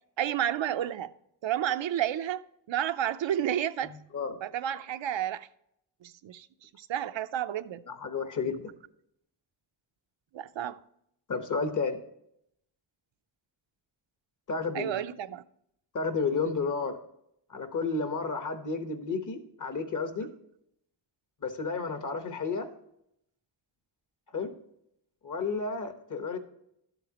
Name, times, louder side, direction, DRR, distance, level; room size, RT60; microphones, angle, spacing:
voice 1, 0.2-1.1 1.4-2.4 2.7-3.9 4.4-5.5 6.0-7.8 10.3-10.8 14.7-15.4, right 11 dB, 75° right, 0.6 m, -31 dB
voice 2, 7.9-8.7 11.3-12.0 14.5-15.0 15.9-17.0 17.5-20.3 21.4-22.7 24.3-24.5 25.2-26.4, left 4 dB, 45° left, 1.1 m, -31 dB
12.5 x 8.0 x 2.9 m
wide cardioid pair, 160°, 45 cm